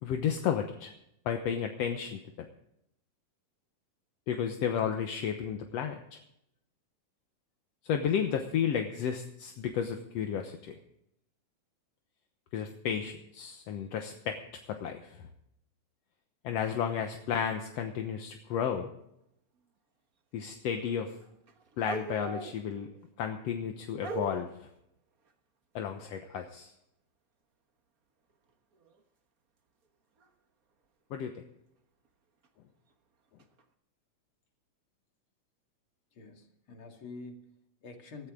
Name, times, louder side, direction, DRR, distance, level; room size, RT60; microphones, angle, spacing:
voice 1, 0.0-0.9 1.3-2.5 4.3-6.2 7.8-10.8 12.5-14.4 14.7-15.2 16.4-18.9 20.3-21.1 21.8-22.9 23.2-24.7 25.8-26.7 31.1-31.3, left 8 dB, 65° left, 5 dB, 1.8 m, -32 dB
sound 1, 20.5-20.9 21.2-23.0 24.0-24.6 28.7-29.0 30.2-30.3 32.4-32.5 33.4-33.6, right 4 dB, 65° right, 0.8 m, -40 dB
voice 2, 36.1-38.3, left 3 dB, 45° left, 3 dB, 2.8 m, -47 dB
18.0 x 14.0 x 3.8 m, 0.78 s
omnidirectional pair, 3.7 m